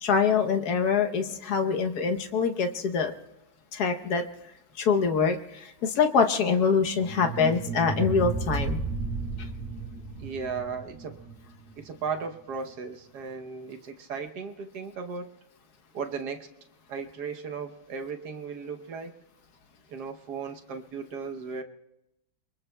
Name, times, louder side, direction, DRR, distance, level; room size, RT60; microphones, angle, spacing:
voice 1, 0.0-3.1 3.7-4.2 4.8-8.8, left 5 dB, 60° left, 5 dB, 1.3 m, -24 dB
deep sea groan, 6.8-11.9, right 4 dB, 80° right, 2.2 m, -33 dB
voice 2, 10.2-11.2 11.8-15.3 15.9-16.5 16.9-19.1 19.9-21.6, right 5 dB, 60° right, 5 dB, 1.3 m, -36 dB
27.0 x 23.5 x 2.2 m, 0.90 s
omnidirectional pair, 2.1 m